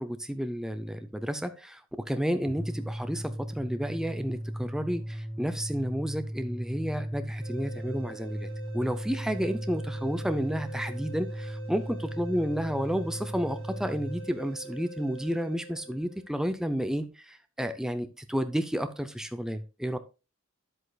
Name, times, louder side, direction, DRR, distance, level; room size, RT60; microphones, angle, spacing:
voice 1, 0.0-8.5 8.7-20.0, equal, 5° right, 0.5 m, -31 dB
sound 1, 2.3-14.3, equal, 35° right, 4.1 m, -37 dB
sound 2, 7.4-16.4, right 3 dB, 70° right, 3.7 m, -45 dB
9.9 x 8.0 x 2.3 m
head